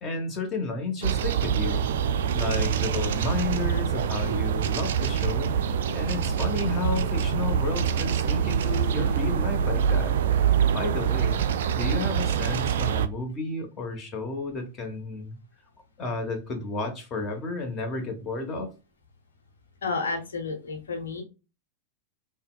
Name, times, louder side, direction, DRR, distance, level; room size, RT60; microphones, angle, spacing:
voice 1, 0.0-1.8 2.3-5.5 5.9-10.2 10.7-11.4 11.7-15.4 16.0-18.7, left 3 dB, 25° left, 4 dB, 1.1 m, -32 dB
sound 1, 1.0-13.1, right 8 dB, 60° right, 0.3 m, -25 dB
voice 2, 19.8-21.2, left 4 dB, 65° left, 3 dB, 1.0 m, -31 dB
5.5 x 2.1 x 2.2 m, 0.29 s
figure-of-eight pair, 90°, 0 cm